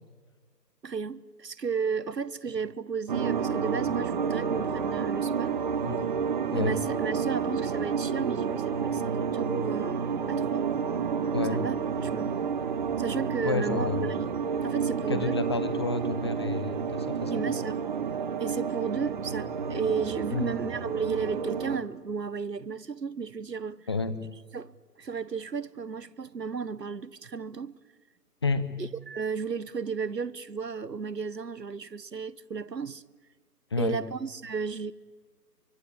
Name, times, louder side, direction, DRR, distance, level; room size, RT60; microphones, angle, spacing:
voice 1, 0.8-5.6 6.5-10.7 11.5-12.4 13.0-14.3 14.6-15.4 17.3-17.8 18.4-23.8 24.5-24.7 25.0-27.7 28.8-33.0 33.8-34.9, right 5 dB, 75° right, 1.3 m, -33 dB
sound 1, 3.1-21.8, right 6 dB, 30° right, 1.5 m, -30 dB
voice 2, 11.3-11.6 13.4-14.1 15.1-17.3 20.3-20.5 23.9-24.2 28.4-28.7 33.7-34.0, left 4 dB, 15° left, 0.8 m, -30 dB
27.0 x 24.0 x 8.4 m
figure-of-eight pair, 145°, 49 cm